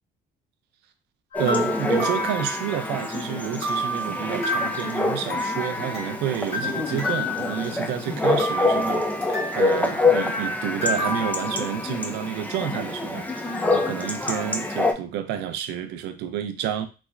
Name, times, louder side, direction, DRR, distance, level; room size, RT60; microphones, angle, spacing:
sound 1, 1.3-3.2 3.6-6.2 6.5-8.0 8.4-9.8 10.8-12.2, left 2 dB, 80° left, 1.6 m, -30 dB
Chatter / Bark / Livestock farm animals working animals, 1.3-14.9, left 2 dB, 10° left, 0.4 m, -26 dB
voice 1, 1.4-16.9, right 10 dB, 85° right, 0.5 m, -30 dB
4.0 x 2.1 x 2.3 m
cardioid pair, 110°, 17 cm